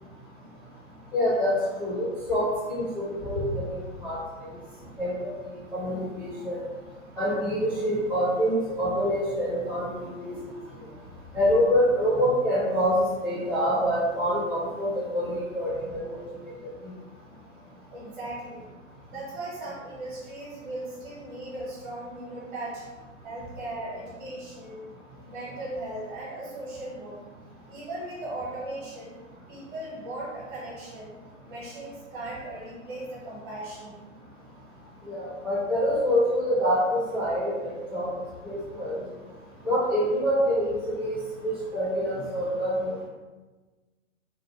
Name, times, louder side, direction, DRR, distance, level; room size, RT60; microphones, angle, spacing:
voice 1, 1.1-1.5 1.8-4.2 5.0-5.1 5.7-6.6 7.2-10.3 11.3-16.2 35.1-37.5 37.9-38.1 38.4-39.0 39.6-41.2 41.4-42.9, equal, 5° right, -14 dB, 0.7 m, -26 dB
voice 2, 17.9-18.7 19.1-22.8 23.2-24.9 25.3-27.2 27.7-29.2 29.5-31.2 31.5-34.0, right 1 dB, 40° right, -6 dB, 1.0 m, -38 dB
2.6 x 2.1 x 2.3 m, 1.3 s
figure-of-eight pair, 120°, 40 cm